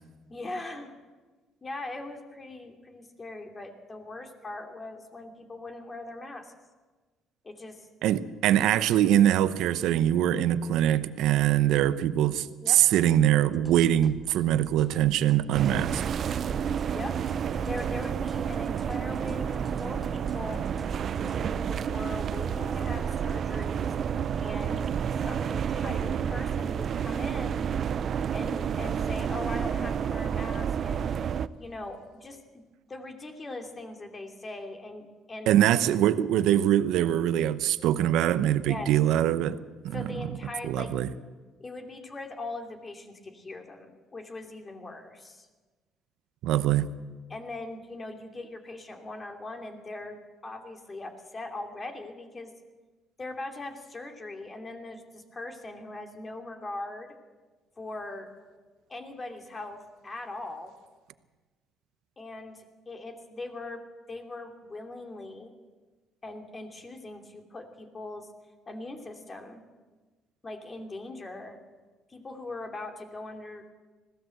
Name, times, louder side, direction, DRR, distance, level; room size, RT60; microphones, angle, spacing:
voice 1, 0.3-0.9 1.6-6.5 7.4-7.9 12.6-13.0 16.9-17.2 17.7-20.6 21.2-23.9 24.3-24.9 25.2-27.7 28.3-31.1 31.6-35.5 38.7-38.9 39.9-40.9 41.6-45.5 47.3-52.5 53.2-57.1 57.8-58.3 58.9-60.7 62.2-63.8 64.1-65.5 66.2-68.3 68.7-69.6 70.4-71.6 72.1-73.7, left 2 dB, 25° left, 2.8 m, -40 dB
voice 2, 8.0-16.0 35.5-39.6 39.8-40.3 40.6-41.1 46.4-46.9, right 11 dB, 80° right, 0.8 m, -23 dB
sound 1, 13.5-21.5, right 2 dB, 25° right, 1.6 m, -48 dB
sound 2, 15.5-31.5, right 8 dB, 50° right, 0.6 m, -30 dB
20.5 x 16.5 x 7.8 m
cardioid pair, 110°, 0 cm